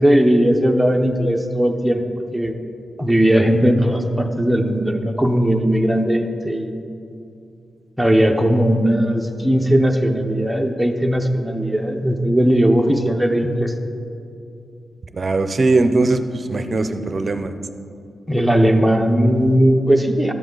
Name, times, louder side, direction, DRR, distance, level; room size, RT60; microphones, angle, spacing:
voice 1, 0.0-2.5 3.0-6.7 8.0-13.7 18.3-20.3, equal, ahead, 3 dB, 0.7 m, -18 dB
voice 2, 15.1-17.5, right 3 dB, 40° right, 9 dB, 0.6 m, -19 dB
12.5 x 7.7 x 3.9 m, 2.6 s
wide cardioid pair, 115°, 0 cm